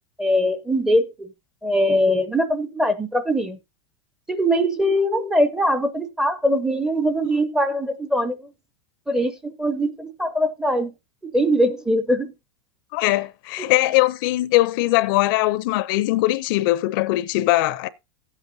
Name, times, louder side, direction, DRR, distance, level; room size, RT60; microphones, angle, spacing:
voice 1, 0.2-1.3 1.6-3.6 4.3-8.5 9.1-10.9 11.2-12.3 13.6-13.7, equal, 5° right, 0.5 m, -22 dB
voice 2, 12.9-17.9, left 18 dB, 50° left, 0.5 m, -21 dB
15.5 x 8.2 x 2.7 m
supercardioid pair, 160°, 15 cm